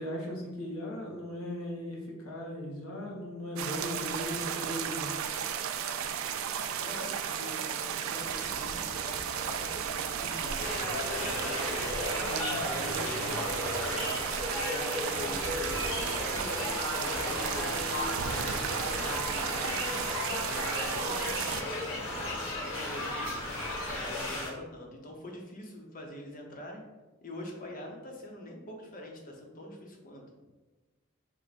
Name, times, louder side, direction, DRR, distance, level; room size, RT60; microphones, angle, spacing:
voice 1, 0.0-5.1 7.0-7.1 7.4-7.5 12.2-12.6, left 1 dB, 85° left, -2 dB, 0.9 m, -38 dB
sound 1, 3.6-21.6, right 8 dB, 70° right, 0.3 m, -34 dB
voice 2, 6.8-11.9 12.5-14.2 14.5-18.5 18.9-19.9 20.3-22.3 22.6-23.5 23.8-26.8 27.2-30.2, left 1 dB, 40° left, 0 dB, 0.7 m, -44 dB
sound 2, 8.0-24.4, right 2 dB, 20° right, 0.8 m, -45 dB
sound 3, 10.6-24.5, left 1 dB, 65° left, 1.2 m, -35 dB
4.5 x 2.1 x 4.1 m, 1.2 s
head